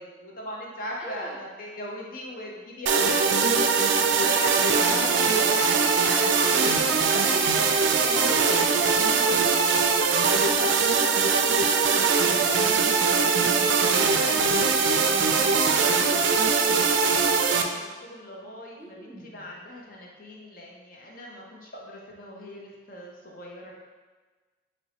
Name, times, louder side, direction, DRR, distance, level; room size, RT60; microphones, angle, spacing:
voice 1, 0.0-5.7 6.2-7.2 8.4-8.8 16.5-23.7, left 1 dB, 50° left, -2 dB, 0.7 m, -39 dB
voice 2, 1.0-1.4 4.8-9.9 10.3-14.7 15.0-16.1 18.8-19.5, equal, 5° right, -4 dB, 0.6 m, -39 dB
sound 1, 2.9-17.6, right 5 dB, 80° right, 0.4 m, -22 dB
4.5 x 3.1 x 2.8 m, 1.3 s
head